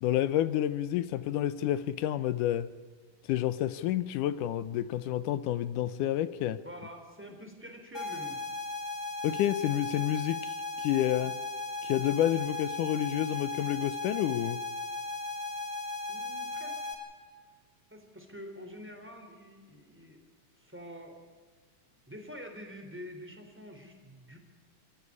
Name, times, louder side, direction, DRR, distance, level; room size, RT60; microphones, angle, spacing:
voice 1, 0.0-2.7 3.3-6.6 9.2-11.3 11.8-14.6, left 12 dB, 75° left, 14 dB, 2.2 m, -29 dB
voice 2, 6.6-8.4 16.1-16.8 17.9-20.2 20.6-21.1 22.1-24.4, equal, 5° right, 4 dB, 2.9 m, -46 dB
sound 1, 7.9-16.9, left 3 dB, 15° left, 4.4 m, -37 dB
26.0 x 13.5 x 9.7 m, 1.5 s
omnidirectional pair, 4.0 m